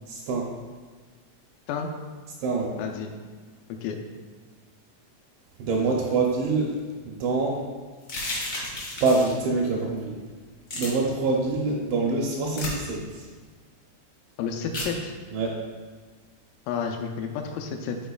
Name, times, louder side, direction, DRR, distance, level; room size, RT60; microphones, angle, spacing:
voice 1, 0.1-0.5 2.4-2.8 5.6-6.7 7.0-7.6 9.0-10.1 10.7-13.3 15.3-15.6, right 3 dB, 80° right, -1 dB, 2.8 m, -25 dB
voice 2, 2.8-3.1 3.7-4.0 14.4-15.1 16.7-18.0, left 6 dB, 85° left, 4 dB, 3.1 m, -30 dB
sound 1, 8.0-9.4 10.7-10.9 12.5-12.7 14.7-14.9, left 2 dB, 60° left, 1.1 m, -32 dB
12.0 x 4.4 x 2.3 m, 1.4 s
omnidirectional pair, 5.8 m